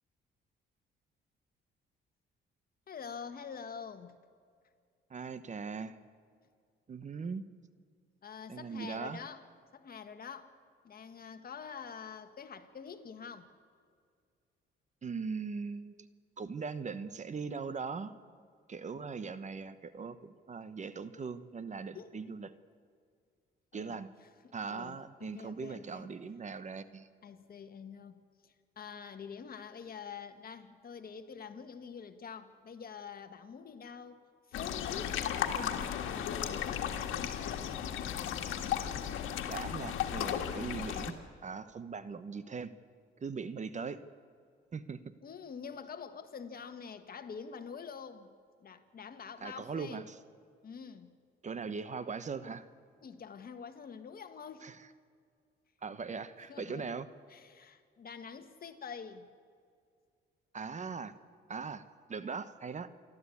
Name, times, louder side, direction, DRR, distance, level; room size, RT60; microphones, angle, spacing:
voice 1, 2.9-4.2 8.2-9.5 9.7-10.5 10.8-13.5 21.9-22.1 23.7-26.1 27.2-34.2 34.5-37.7 45.2-48.3 48.6-50.0 50.6-51.1 53.0-54.7 56.5-56.9 57.3-59.3, left 6 dB, 50° left, 8 dB, 1.6 m, -46 dB
voice 2, 5.1-5.9 6.9-7.4 8.5-9.2 15.0-16.0 16.4-18.2 18.7-22.5 23.7-24.1 24.5-27.1 39.5-41.1 41.4-42.7 43.2-44.0 44.7-45.0 49.4-50.0 51.4-52.7 54.6-54.8 55.8-57.1 60.5-61.1 61.5-61.8 62.1-62.9, right 5 dB, 35° right, 13 dB, 1.1 m, -40 dB
sound 1, 34.5-41.1, left 9 dB, 85° left, 1.7 m, -35 dB
28.0 x 12.5 x 8.4 m, 2.2 s
cardioid pair, 90°, 20 cm